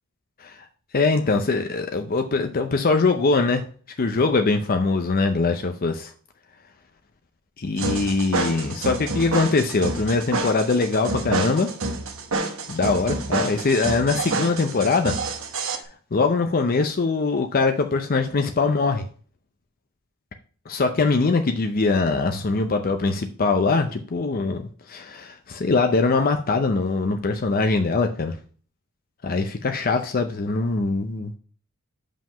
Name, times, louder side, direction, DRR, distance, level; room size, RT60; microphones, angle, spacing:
voice 1, 0.9-3.6 4.0-6.1 7.6-11.7 12.7-15.1 15.6-15.7 16.1-19.0 20.7-28.4 29.2-31.3, left 3 dB, 45° left, 6 dB, 0.6 m, -22 dB
sound 1, 7.8-15.8, right 3 dB, 65° right, 1.2 m, -28 dB
5.7 x 5.2 x 5.6 m, 0.42 s
head